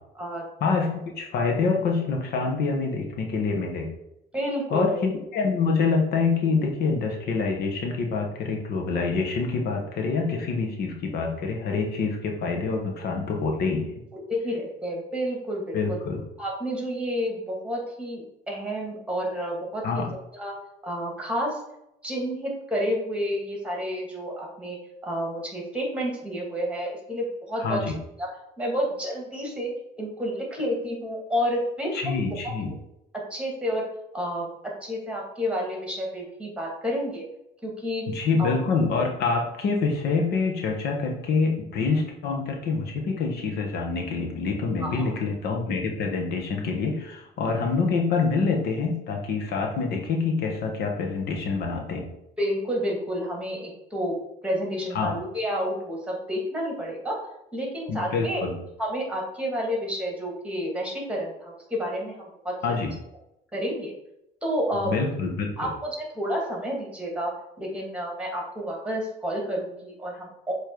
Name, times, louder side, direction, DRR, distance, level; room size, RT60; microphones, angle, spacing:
voice 1, 0.6-3.9 4.7-13.9 15.7-16.2 19.8-20.1 27.6-28.0 31.9-32.7 38.1-52.1 54.9-55.1 57.9-58.6 62.6-62.9 64.8-65.7, left 4 dB, 70° left, 1 dB, 1.3 m, -26 dB
voice 2, 4.3-5.0 14.3-16.0 16.4-20.1 20.3-20.5 20.8-21.6 22.0-24.8 25.0-27.8 28.2-28.3 28.6-29.7 30.0-32.2 33.3-33.8 34.1-34.5 34.8-37.2 37.6-38.0 38.4-38.6 44.8-45.0 52.4-54.1 54.4-57.2 57.5-58.4 58.8-62.5 63.5-63.9 64.4-64.9 65.6-67.3 67.6-70.5, equal, 5° right, -1 dB, 2.2 m, -30 dB
7.0 x 3.3 x 4.6 m, 0.83 s
cardioid pair, 110°, 17 cm